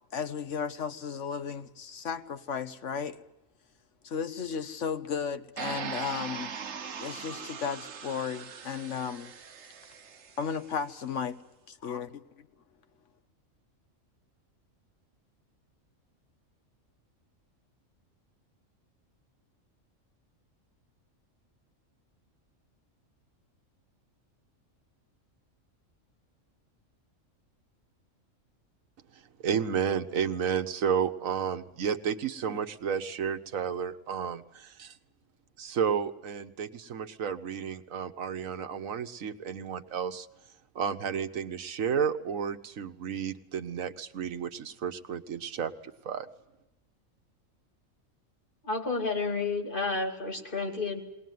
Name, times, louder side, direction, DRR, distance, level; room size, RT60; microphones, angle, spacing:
voice 1, 0.1-3.2 4.0-6.5 6.9-9.3 10.4-11.4 11.7-12.5, left 6 dB, 65° left, 1.4 m, -34 dB
sound 1, 5.6-10.6, right 6 dB, 60° right, 1.3 m, -40 dB
voice 2, 29.1-35.0 35.6-40.3 40.7-45.7 46.0-46.3, right 7 dB, 85° right, 1.4 m, -32 dB
voice 3, 48.6-51.0, left 3 dB, 40° left, 2.7 m, -31 dB
20.5 x 19.0 x 9.4 m
omnidirectional pair, 1.4 m